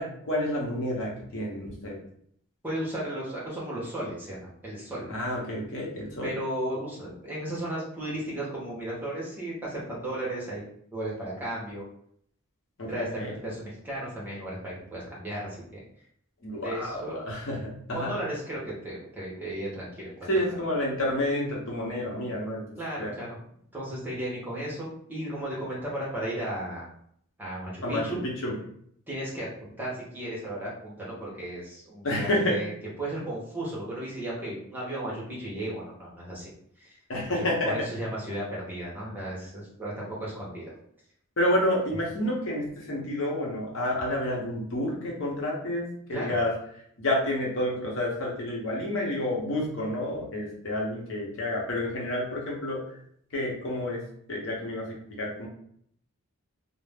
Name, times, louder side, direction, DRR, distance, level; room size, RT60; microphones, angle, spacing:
voice 1, 0.0-2.0 5.1-6.3 12.8-13.3 16.4-18.1 20.3-22.6 23.0-23.1 27.8-28.5 32.0-32.6 37.1-37.8 41.4-46.5 47.0-52.8 53.3-54.0 54.3-54.9 55.2-55.5, left 1 dB, 60° left, -3 dB, 0.8 m, -29 dB
voice 2, 2.6-5.1 6.2-10.6 10.9-11.8 12.9-15.8 16.5-17.2 17.9-20.1 22.8-23.4 23.7-26.9 27.4-28.2 29.1-32.7 33.0-36.5 36.8-37.0 37.3-40.7 46.1-46.4, right 1 dB, 10° right, -7 dB, 0.8 m, -35 dB
2.5 x 2.0 x 3.3 m, 0.66 s
head